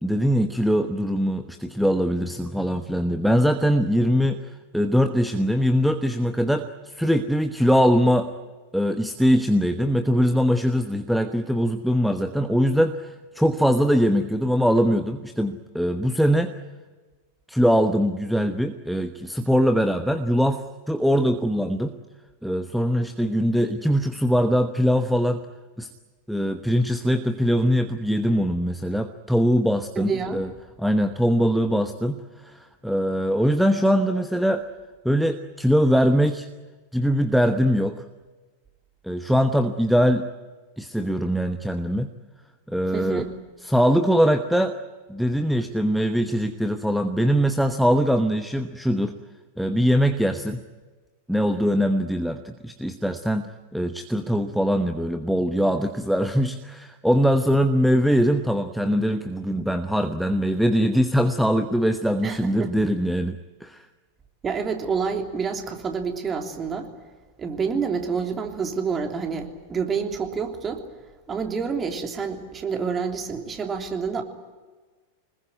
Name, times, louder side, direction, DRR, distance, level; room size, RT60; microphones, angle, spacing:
voice 1, 0.0-4.4 4.7-8.3 8.7-16.5 17.5-21.9 22.4-25.4 25.8-25.9 26.3-30.5 30.8-34.6 35.0-36.5 36.9-38.0 39.0-40.3 40.8-42.1 42.7-43.3 43.6-44.7 45.1-49.1 49.6-50.6 51.3-63.9, equal, ahead, 8 dB, 1.1 m, -22 dB
voice 2, 29.9-30.4 42.9-43.3 62.2-62.7 64.4-66.9 67.4-70.8 71.3-74.2, right 5 dB, 20° right, 4 dB, 3.3 m, -28 dB
25.5 x 21.0 x 9.5 m, 1.3 s
figure-of-eight pair, 90°, 0 cm